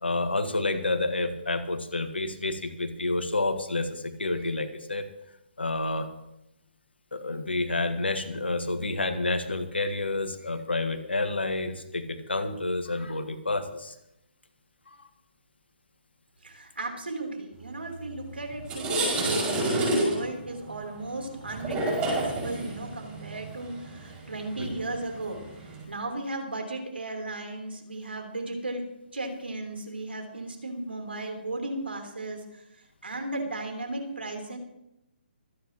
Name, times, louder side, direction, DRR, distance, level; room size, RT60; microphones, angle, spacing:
voice 1, 0.0-5.0 5.6-6.1 7.1-13.9 14.9-15.1 24.6-24.8, left 2 dB, 85° left, 9 dB, 1.7 m, -29 dB
voice 2, 16.4-28.8 29.1-32.6 33.0-34.6, right 2 dB, 85° right, 2 dB, 3.7 m, -35 dB
sound 1, 18.0-18.2 18.5-25.8, right 1 dB, 15° right, 6.3 m, -30 dB
25.5 x 10.0 x 3.1 m, 0.87 s
figure-of-eight pair, 140°, 6 cm